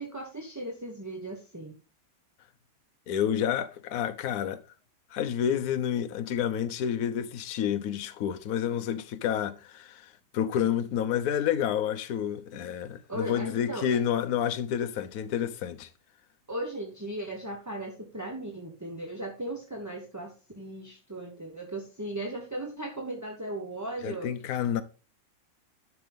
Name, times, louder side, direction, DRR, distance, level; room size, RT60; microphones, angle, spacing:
voice 1, 0.0-1.7 12.5-12.6 13.1-14.0 16.5-24.3, right 1 dB, 15° right, 0.8 m, -37 dB
voice 2, 3.1-4.6 5.1-10.0 10.3-15.9 24.0-24.8, left 9 dB, 60° left, 1.1 m, -29 dB
11.0 x 6.0 x 3.5 m
omnidirectional pair, 2.0 m